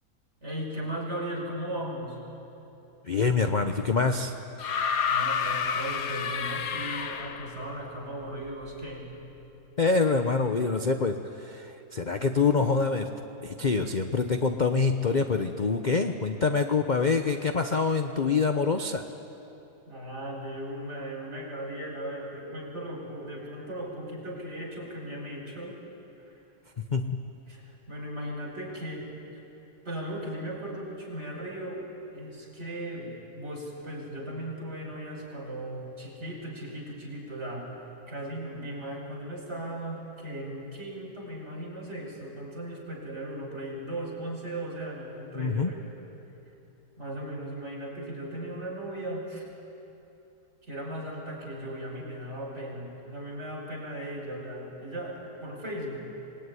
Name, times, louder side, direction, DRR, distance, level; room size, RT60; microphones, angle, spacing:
voice 1, 0.4-2.2 5.1-9.1 19.9-25.8 26.2-26.3 27.5-29.4 29.8-31.9 32.1-37.7 38.1-45.8 47.0-49.5 50.6-56.0, right 1 dB, 40° right, -2 dB, 5.8 m, -37 dB
voice 2, 3.0-4.3 9.8-13.1 13.4-19.0 26.9-27.2 45.3-45.7, left 4 dB, 35° left, 6 dB, 0.8 m, -25 dB
sound 1, 4.6-7.7 8.9-9.0, left 6 dB, 65° left, 1.4 m, -29 dB
26.5 x 19.5 x 9.7 m, 3.0 s
omnidirectional pair, 1.7 m